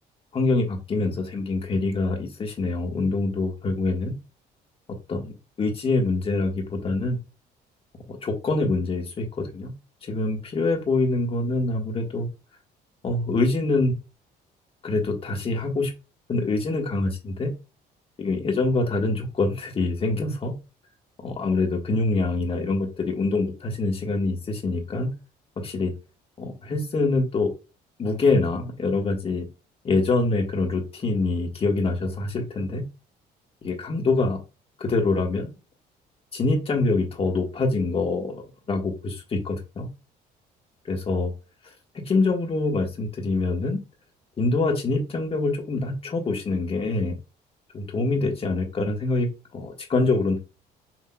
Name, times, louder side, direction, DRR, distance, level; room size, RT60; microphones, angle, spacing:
voice 1, 0.3-4.1 5.1-5.3 5.6-7.2 8.1-9.7 10.0-12.3 13.0-13.9 14.8-15.9 16.3-17.5 18.2-20.5 21.2-25.1 25.6-25.9 26.4-27.5 28.0-29.5 29.8-32.8 33.6-34.4 34.8-35.5 36.3-39.9 40.9-41.3 41.9-43.8 44.4-47.1 47.7-49.3 49.5-50.4, left 3 dB, 35° left, 3 dB, 1.4 m, -25 dB
6.0 x 3.1 x 2.2 m, 0.29 s
cardioid pair, 110°, 17 cm